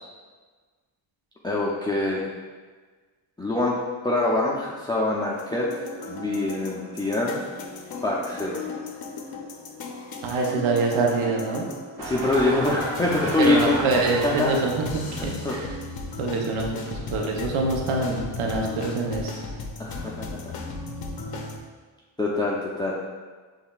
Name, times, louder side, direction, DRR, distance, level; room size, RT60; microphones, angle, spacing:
voice 1, 1.4-2.3 3.4-3.7 4.0-5.7 6.0-7.4 8.0-8.6 12.0-13.8 14.2-14.5 15.2-15.6 19.8-20.5 22.2-23.0, left 2 dB, 10° left, -5 dB, 0.5 m, -24 dB
sound 1, 5.3-21.6, left 3 dB, 45° left, 0.7 m, -36 dB
voice 2, 10.2-11.6 13.4-15.7 16.2-19.3, right 3 dB, 75° right, 0 dB, 0.8 m, -25 dB
sound 2, 12.0-14.8, right 3 dB, 40° right, 0.7 m, -33 dB
5.3 x 3.5 x 2.4 m, 1.4 s
cardioid pair, 75°, 49 cm